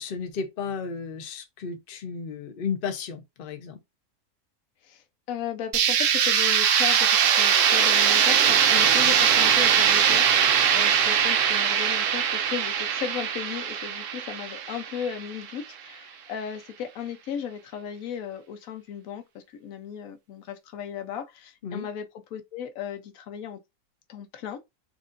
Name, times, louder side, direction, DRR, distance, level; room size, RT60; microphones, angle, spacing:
voice 1, 0.0-3.8 21.6-21.9, left 5 dB, 45° left, 0.8 m, -33 dB
voice 2, 4.8-23.6 24.1-24.6, left 8 dB, 70° left, 1.1 m, -36 dB
sound 1, 5.7-15.5, right 8 dB, 65° right, 0.9 m, -21 dB
6.5 x 2.5 x 2.5 m
omnidirectional pair, 1.6 m